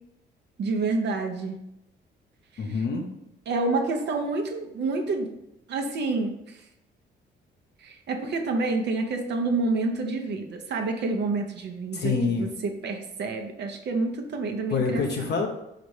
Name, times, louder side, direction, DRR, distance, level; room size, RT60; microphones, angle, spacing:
voice 1, 0.6-1.6 3.5-5.3 5.7-6.3 7.8-15.0, right 3 dB, 60° right, 3 dB, 0.7 m, -28 dB
voice 2, 2.6-3.1 11.9-12.5 14.7-15.5, left 4 dB, 60° left, 1 dB, 0.7 m, -26 dB
4.1 x 2.5 x 4.7 m, 0.85 s
cardioid pair, 90°, 20 cm